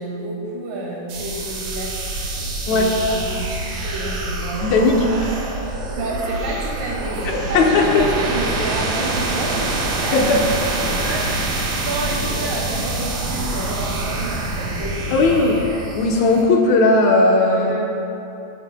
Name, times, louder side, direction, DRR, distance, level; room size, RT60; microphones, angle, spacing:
voice 1, 0.0-4.8 5.6-10.2 11.0-15.3 17.4-17.8, right 2 dB, 90° right, -3 dB, 3.6 m, -30 dB
sound 1, 1.1-16.4, right 2 dB, 65° right, 3.1 m, -26 dB
voice 2, 2.7-3.0 4.6-5.0 5.2-5.4 7.3-8.0 10.1-10.5 10.9-11.1 15.1-15.6 16.0-17.8, left 3 dB, 70° left, 0 dB, 2.0 m, -17 dB
17.5 x 11.0 x 2.2 m, 2.7 s
omnidirectional pair, 3.7 m